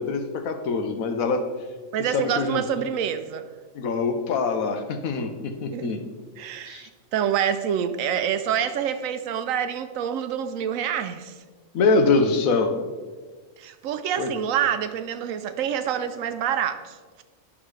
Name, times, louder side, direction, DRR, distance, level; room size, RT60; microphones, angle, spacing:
voice 1, 0.0-1.4 2.0-2.6 3.7-6.0 6.7-6.9 11.7-12.7 14.2-14.3, left 4 dB, 85° left, 6 dB, 1.2 m, -24 dB
voice 2, 1.9-3.5 5.7-6.0 6.4-11.3 13.6-17.2, right 9 dB, 80° right, 10 dB, 1.0 m, -27 dB
9.8 x 6.0 x 3.2 m, 1.4 s
omnidirectional pair, 1.4 m